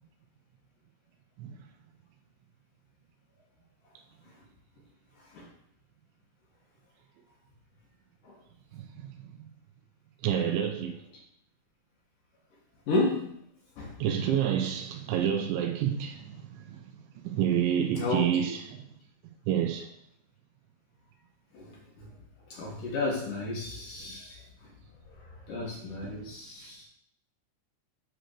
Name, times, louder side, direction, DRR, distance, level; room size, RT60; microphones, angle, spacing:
voice 1, 8.7-9.1 10.2-10.9 14.0-16.8 17.2-18.8 19.5-19.9 26.0-26.3, right 9 dB, 80° right, 3.2 m, -29 dB
voice 2, 12.9-13.3 13.8-13.9 17.9-18.3 21.5-21.7 22.5-24.3 25.5-26.8, left 2 dB, 55° left, 2.9 m, -32 dB
9.1 x 4.8 x 6.7 m
omnidirectional pair, 5.4 m